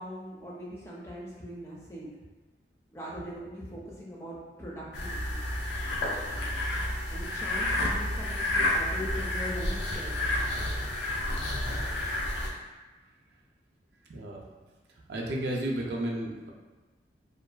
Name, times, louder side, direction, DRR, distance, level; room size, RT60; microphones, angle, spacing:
voice 1, 0.0-2.1 2.9-5.4 7.1-10.3, equal, 15° left, -6 dB, 0.4 m, -41 dB
sound 1, 4.9-12.5, left 1 dB, 80° left, 0.4 m, -30 dB
voice 2, 14.1-14.4 15.0-16.5, right 1 dB, 65° right, -2 dB, 0.4 m, -33 dB
2.5 x 2.2 x 2.2 m, 1.2 s
head